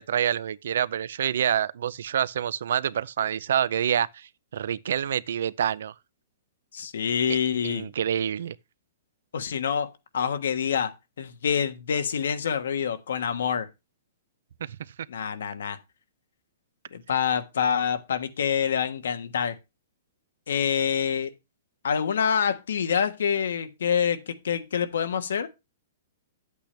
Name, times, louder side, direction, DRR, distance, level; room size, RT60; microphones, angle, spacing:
voice 1, 0.0-5.9 7.3-7.4 7.6-8.5 14.7-14.8, right 9 dB, 65° right, 0.4 m, -27 dB
voice 2, 6.7-7.9 9.3-13.7 15.1-15.8 16.9-19.5 20.5-21.3 21.8-25.5, left 7 dB, 85° left, 1.3 m, -26 dB
10.5 x 8.3 x 3.3 m
hypercardioid pair, 175°, 0 cm